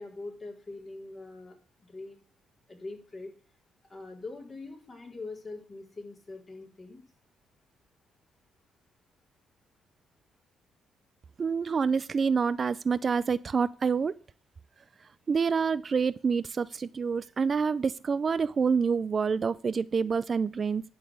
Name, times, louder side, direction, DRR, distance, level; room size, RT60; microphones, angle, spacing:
voice 1, 0.0-2.2 2.7-3.3 3.9-7.0, left 3 dB, 30° left, 4.0 m, -43 dB
voice 2, 11.4-14.1 15.3-20.8, right 5 dB, 40° right, 0.4 m, -27 dB
12.0 x 4.1 x 7.9 m
cardioid pair, 90°, 0 cm